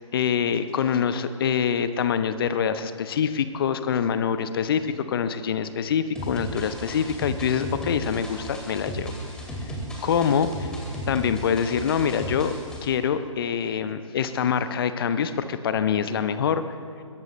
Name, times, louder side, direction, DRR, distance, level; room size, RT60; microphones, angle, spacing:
voice 1, 0.1-9.1 10.0-10.7 11.1-12.5 12.8-16.6, left 7 dB, 45° left, 11 dB, 1.0 m, -25 dB
sound 1, 6.2-12.8, right 1 dB, 5° left, 2.4 m, -35 dB
22.5 x 17.0 x 3.2 m, 2.3 s
figure-of-eight pair, 130°, 17 cm